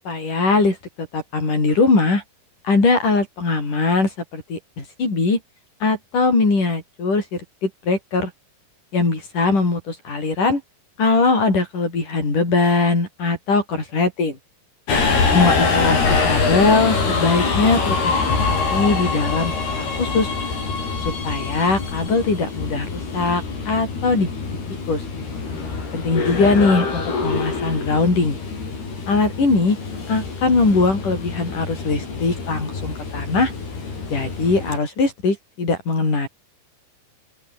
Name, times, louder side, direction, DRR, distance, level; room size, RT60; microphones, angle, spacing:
voice 1, 0.1-0.8 1.1-2.2 2.6-5.4 5.8-7.2 7.6-8.3 8.9-10.6 11.0-14.4 15.3-16.0 16.3-20.3 21.0-24.4 24.9-25.0 25.9-28.4 29.1-29.8 30.1-33.5 34.1-36.3, left 3 dB, 50° left, 9.4 m, -20 dB
Subway metro underground, 14.9-34.8, left 4 dB, 65° left, 9.6 m, -24 dB
open air
omnidirectional pair, 4.9 m